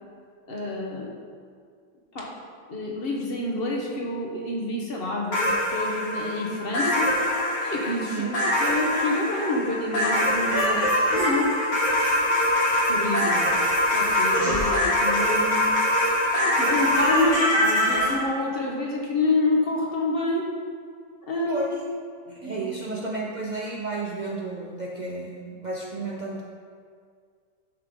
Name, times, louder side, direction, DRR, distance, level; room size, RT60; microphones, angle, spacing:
voice 1, 0.5-1.1 2.1-2.4 2.7-7.1 7.6-10.8 11.1-11.5 12.9-13.3 13.9-15.7 16.3-20.5 21.3-21.6 22.4-22.7, left 2 dB, 35° left, -1 dB, 1.3 m, -28 dB
sound 1, 5.3-18.1, left 1 dB, 80° left, 2.7 m, -23 dB
voice 2, 8.1-8.4 10.6-10.9 13.2-13.7 21.5-21.8 22.3-26.4, right 2 dB, 90° right, -3 dB, 0.4 m, -32 dB
10.5 x 5.9 x 3.7 m, 2.1 s
omnidirectional pair, 2.0 m